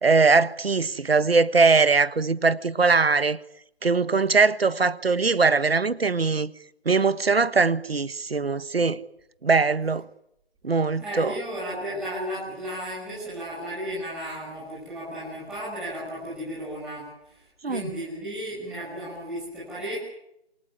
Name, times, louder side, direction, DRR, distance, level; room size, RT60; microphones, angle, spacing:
voice 1, 0.0-3.4 3.8-6.5 6.8-9.0 9.4-10.1 10.6-11.3 17.6-17.9, right 4 dB, 65° right, 1.5 m, -21 dB
voice 2, 11.0-20.0, equal, 5° right, 6.4 m, -34 dB
27.5 x 20.5 x 9.9 m
figure-of-eight pair, 160°, 32 cm